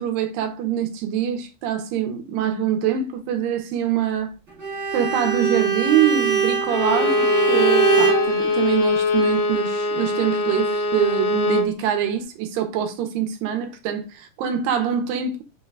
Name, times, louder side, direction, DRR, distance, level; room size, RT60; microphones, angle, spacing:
voice 1, 0.0-4.3 4.9-15.4, right 9 dB, 85° right, 2.4 m, -24 dB
Bowed string instrument, 4.6-8.3, right 6 dB, 65° right, 0.6 m, -22 dB
Bowed string instrument 2, 6.7-11.7, left 2 dB, 80° left, 1.7 m, -22 dB
5.8 x 2.2 x 3.3 m
omnidirectional pair, 4.0 m